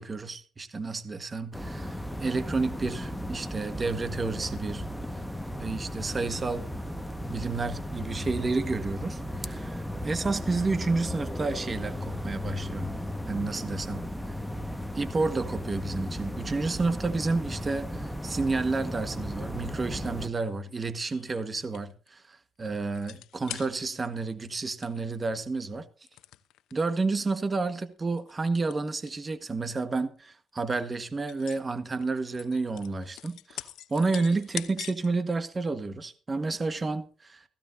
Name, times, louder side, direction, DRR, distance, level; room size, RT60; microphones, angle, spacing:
voice 1, 0.0-4.8 5.6-6.7 7.3-12.9 13.3-14.0 14.9-25.9 26.7-37.4, right 3 dB, 30° right, 1.5 m, -30 dB
sound 1, 1.5-20.3, equal, 5° left, 1.6 m, -35 dB
sound 2, 21.1-22.1 22.9-24.2 24.5-24.6 24.8-25.1 26.1-26.8 27.4-27.5 28.0-29.2 29.5-29.8 30.3-30.4 30.7-31.6 32.0-35.1 35.5-35.6, left 13 dB, 85° left, 0.9 m, -43 dB
16.5 x 16.5 x 2.8 m
cardioid pair, 90°, 0 cm